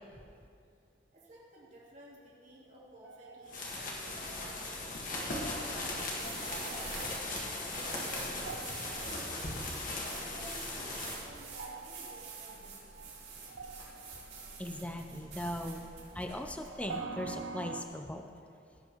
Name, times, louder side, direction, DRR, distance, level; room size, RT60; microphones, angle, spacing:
voice 1, 1.1-6.1 6.6-7.2 7.7-8.8 9.1-9.2 9.9-13.0, right 1 dB, 40° right, -7 dB, 2.7 m, -53 dB
sound 1, 3.0-5.0 6.0-17.8, right 4 dB, 90° right, 0.6 m, -48 dB
sound 2, 3.5-11.2, left 2 dB, 45° left, 1.7 m, -38 dB
sound 3, 5.8-17.0, right 4 dB, 65° right, 3.0 m, -48 dB
voice 2, 14.6-15.8 16.1-18.3, left 1 dB, 5° left, 4 dB, 0.5 m, -39 dB
16.5 x 8.0 x 3.1 m, 2.3 s
head